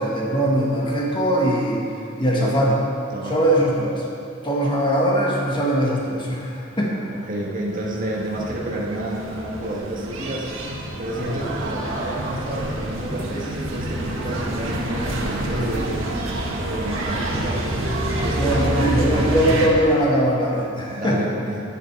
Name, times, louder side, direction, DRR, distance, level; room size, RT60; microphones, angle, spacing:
voice 1, 0.0-1.8 2.2-2.8 3.3-4.0 4.4-7.0 11.2-11.4 15.5-15.7 18.3-21.2, right 1 dB, 25° left, -3 dB, 1.7 m, -21 dB
voice 2, 3.1-3.5 7.3-10.5 11.0-16.0 16.5-17.8 18.1-19.3 20.9-21.6, right 1 dB, 45° right, -3 dB, 1.9 m, -30 dB
sound 1, 7.7-19.7, right 1 dB, 85° right, 1.8 m, -27 dB
12.0 x 9.9 x 4.8 m, 2.5 s
head